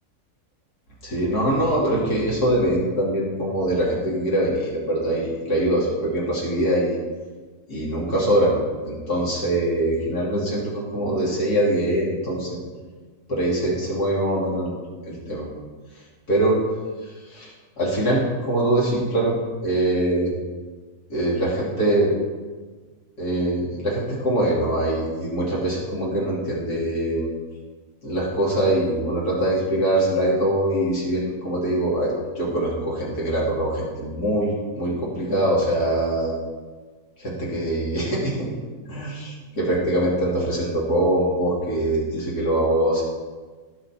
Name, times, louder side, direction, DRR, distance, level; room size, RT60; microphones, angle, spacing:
voice 1, 1.0-7.0 7.7-8.6 8.8-12.6 13.3-14.8 15.1-15.5 16.3-16.6 17.0-19.4 19.6-20.3 21.1-22.2 23.2-27.3 28.0-36.4 37.2-38.5 38.9-43.0, right 1 dB, 75° left, -4 dB, 3.4 m, -23 dB
17.0 x 5.8 x 4.4 m, 1.4 s
omnidirectional pair, 1.7 m